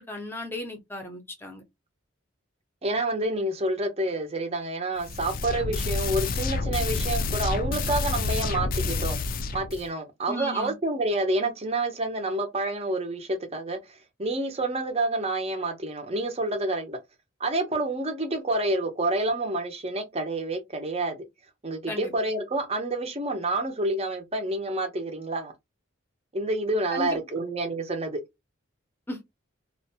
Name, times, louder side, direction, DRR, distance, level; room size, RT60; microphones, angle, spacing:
voice 1, 0.0-1.6 10.3-10.7 21.9-22.1 26.9-27.4 29.1-29.2, left 1 dB, 10° left, 0.7 m, -35 dB
voice 2, 2.8-9.2 9.5-17.0 17.4-21.2 21.6-25.5 26.3-28.2, right 2 dB, 30° right, 0.6 m, -28 dB
sound 1, 5.0-9.9, left 3 dB, 45° left, 0.3 m, -28 dB
2.5 x 2.1 x 2.7 m
head